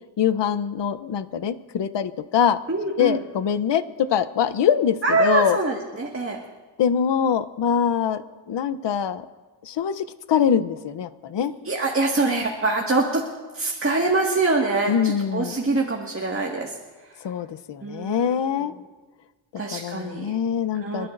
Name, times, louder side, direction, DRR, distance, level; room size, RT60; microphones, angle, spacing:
voice 1, 0.2-2.6 3.0-5.6 6.8-9.2 9.6-11.5 14.9-15.5 17.2-18.7 19.7-21.1, left 8 dB, 60° left, 13 dB, 0.8 m, -23 dB
voice 2, 2.7-3.2 5.0-6.4 11.7-13.2 13.5-16.7 17.8-18.3 19.6-20.3 20.8-21.1, right 3 dB, 25° right, 0 dB, 1.9 m, -24 dB
27.0 x 12.5 x 2.6 m, 1.3 s
cardioid pair, 60°, 49 cm